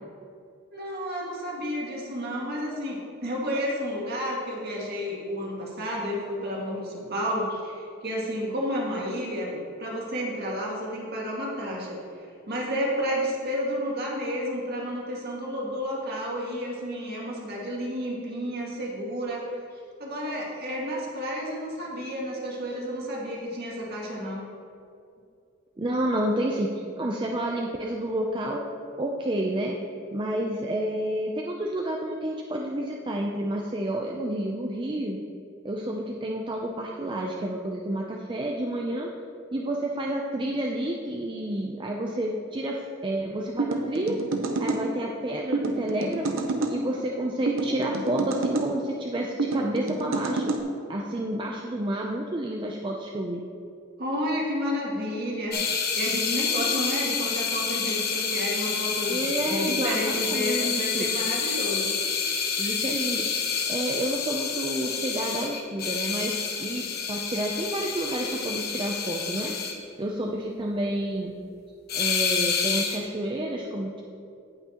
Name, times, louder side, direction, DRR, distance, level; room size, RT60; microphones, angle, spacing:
voice 1, 0.7-19.5 20.0-24.4 54.0-62.0, equal, 50° right, -4 dB, 2.1 m, -31 dB
voice 2, 25.8-28.6 28.9-29.8 30.1-35.2 35.6-39.1 39.5-44.2 44.6-46.4 46.7-50.5 50.9-53.4 59.1-61.1 62.6-63.3 63.7-69.6 70.0-71.3 71.9-74.0, right 1 dB, 25° right, -1 dB, 0.5 m, -30 dB
sound 1, 43.6-44.8 45.5-46.8 47.5-48.7 49.4-50.6, right 3 dB, 80° right, 0.8 m, -28 dB
sound 2, 55.5-69.7 71.9-73.0, left 6 dB, 50° left, 1.0 m, -28 dB
17.0 x 5.8 x 3.0 m, 2.6 s
head